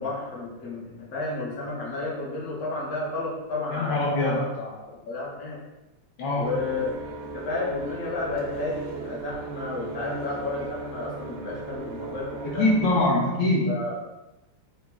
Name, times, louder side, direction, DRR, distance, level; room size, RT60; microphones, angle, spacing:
voice 1, 0.0-5.6 6.4-7.0 7.3-12.6 13.7-13.9, left 2 dB, 50° left, -5 dB, 1.0 m, -32 dB
voice 2, 3.7-4.5 6.2-6.5 12.6-13.8, left 2 dB, 75° left, -4 dB, 1.5 m, -23 dB
sound 1, 6.4-13.0, right 4 dB, 75° right, 1.0 m, -37 dB
5.7 x 2.1 x 2.3 m, 1.0 s
omnidirectional pair, 2.2 m